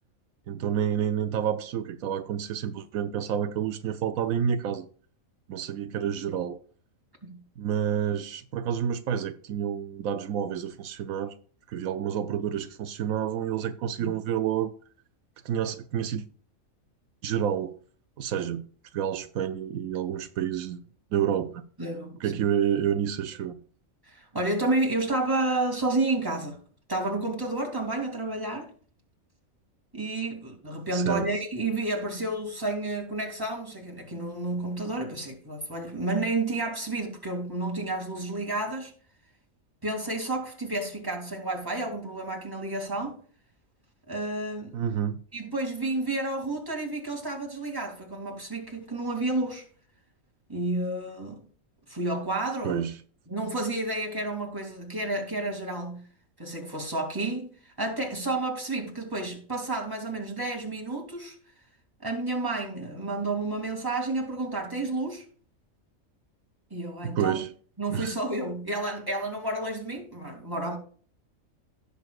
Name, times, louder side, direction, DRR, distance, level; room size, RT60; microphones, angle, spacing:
voice 1, 0.5-4.9 5.5-6.6 7.6-11.3 11.7-14.7 15.4-16.2 17.2-17.7 18.2-18.6 18.9-20.8 21.1-21.6 22.2-23.6 30.9-31.3 44.7-45.2 52.6-52.9 67.0-67.5 67.9-68.1, right 9 dB, 80° right, 1.1 m, -29 dB
voice 2, 21.8-22.4 24.1-26.6 26.9-28.7 29.9-38.9 39.8-43.2 44.1-44.7 45.3-49.7 50.5-51.4 51.9-52.8 53.3-56.0 56.4-61.3 62.0-65.2 66.7-67.4 67.8-70.8, right 2 dB, 15° right, 2.5 m, -30 dB
16.5 x 6.8 x 2.4 m
omnidirectional pair, 1.4 m